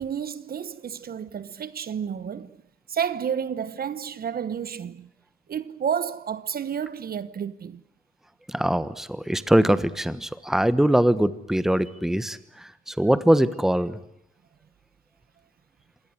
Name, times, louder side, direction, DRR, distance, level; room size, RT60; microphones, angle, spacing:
voice 1, 0.0-2.6 2.9-5.1 5.5-7.8, right 8 dB, 50° right, 1.0 m, -30 dB
voice 2, 8.5-12.4 13.0-14.0, right 1 dB, ahead, 1.3 m, -22 dB
26.5 x 18.0 x 9.5 m
cardioid pair, 90°, 20 cm